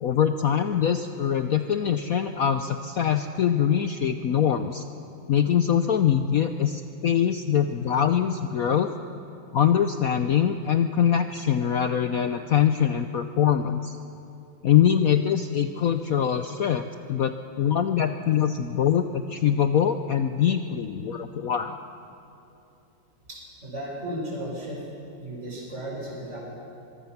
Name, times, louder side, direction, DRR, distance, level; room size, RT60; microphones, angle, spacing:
voice 1, 0.0-4.8 5.3-8.9 9.5-14.0 14.6-21.8, left 9 dB, 80° left, 8 dB, 0.8 m, -23 dB
voice 2, 23.3-24.8 25.2-26.4, right 1 dB, 30° right, -3 dB, 5.6 m, -35 dB
24.0 x 21.5 x 5.9 m, 2.7 s
omnidirectional pair, 2.3 m